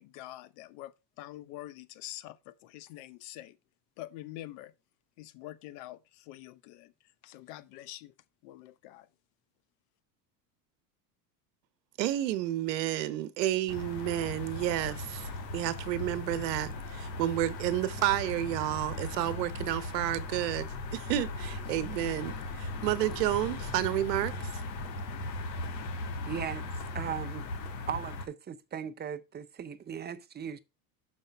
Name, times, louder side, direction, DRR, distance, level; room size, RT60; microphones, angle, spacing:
voice 1, 0.0-3.6 4.0-4.7 5.2-6.9 7.2-8.1 8.4-9.1, left 15 dB, 70° left, 1.0 m, -46 dB
voice 2, 12.0-24.3, right 14 dB, 80° right, 1.0 m, -31 dB
sound 1, 13.7-28.3, left 2 dB, 90° left, 1.6 m, -38 dB
voice 3, 26.3-26.7 26.9-27.5 27.9-30.6, right 8 dB, 20° right, 0.6 m, -37 dB
6.6 x 5.3 x 4.5 m
supercardioid pair, 100°, 49 cm